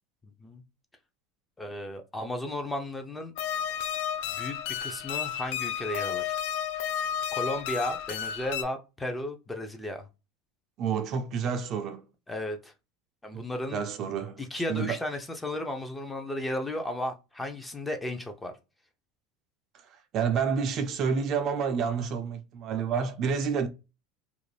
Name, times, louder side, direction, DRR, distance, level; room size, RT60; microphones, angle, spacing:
voice 1, 0.2-0.6 1.6-3.3 4.3-6.3 7.3-10.1 12.3-12.7 13.2-13.8 14.4-18.5, left 1 dB, 10° left, 0.5 m, -34 dB
sound 1, 3.4-8.6, left 9 dB, 70° left, 0.4 m, -32 dB
voice 2, 10.8-12.0 13.3-13.4 13.7-14.4 14.7-15.0 19.7-23.7, right 6 dB, 45° right, 0.4 m, -29 dB
2.5 x 2.0 x 3.2 m
supercardioid pair, 125°, 0 cm